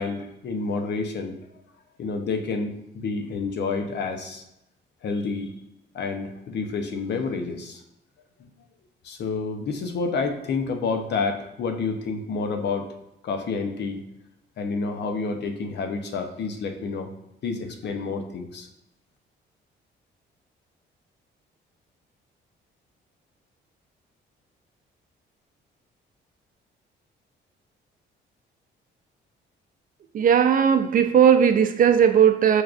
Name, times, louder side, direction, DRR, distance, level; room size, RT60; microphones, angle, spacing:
voice 1, 0.0-1.4 2.0-4.4 5.0-5.5 5.9-7.8 8.4-8.5 9.0-12.9 13.2-14.0 14.6-17.1 17.4-18.7, left 4 dB, 60° left, 6 dB, 0.6 m, -29 dB
voice 2, 30.1-32.6, right 8 dB, 45° right, 8 dB, 0.4 m, -17 dB
6.2 x 2.3 x 2.4 m, 0.84 s
cardioid pair, 90°, 20 cm